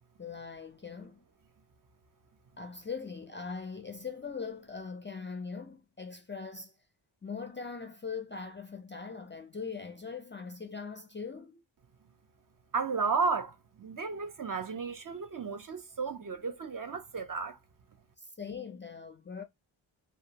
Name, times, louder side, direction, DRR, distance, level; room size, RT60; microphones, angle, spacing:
voice 1, 0.2-1.2 2.6-6.7 7.2-11.6 18.2-19.4, left 5 dB, 25° left, 0.3 m, -41 dB
voice 2, 12.7-17.6, right 4 dB, 45° right, 0.5 m, -33 dB
2.7 x 2.2 x 2.7 m
wide cardioid pair, 85°, 48 cm